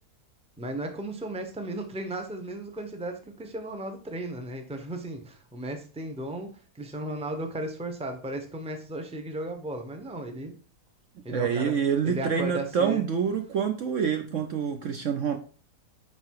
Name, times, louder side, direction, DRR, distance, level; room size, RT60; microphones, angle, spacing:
voice 1, 0.6-10.5 11.2-11.7 12.0-13.0, right 1 dB, 5° right, 5 dB, 0.8 m, -35 dB
voice 2, 11.3-15.4, right 7 dB, 60° right, 7 dB, 0.9 m, -27 dB
9.8 x 4.0 x 4.7 m, 0.39 s
omnidirectional pair, 1.7 m